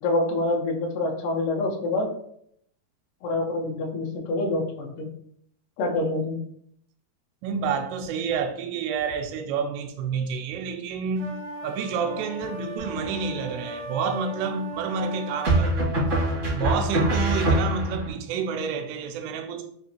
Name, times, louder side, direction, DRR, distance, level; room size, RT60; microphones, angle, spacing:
voice 1, 0.0-2.1 3.2-5.1 5.8-6.4, left 2 dB, 80° left, 1.9 m, -26 dB
voice 2, 7.4-15.9 16.5-19.6, right 5 dB, 90° right, 2.6 m, -29 dB
sound 1, 11.2-15.6, right 1 dB, 75° right, 1.8 m, -37 dB
sound 2, 12.8-13.4 15.4-18.1, right 1 dB, 55° right, 0.8 m, -24 dB
6.1 x 2.5 x 2.8 m
omnidirectional pair, 4.6 m